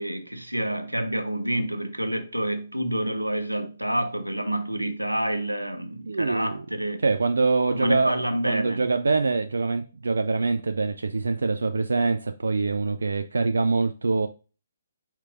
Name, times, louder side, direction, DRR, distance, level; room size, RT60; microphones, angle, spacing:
voice 1, 0.0-7.0 7.7-8.8, right 1 dB, 85° right, 0.7 m, -28 dB
voice 2, 6.0-6.7 7.0-14.3, right 3 dB, 65° right, 0.3 m, -24 dB
4.6 x 4.4 x 2.3 m
figure-of-eight pair, 135°, 0 cm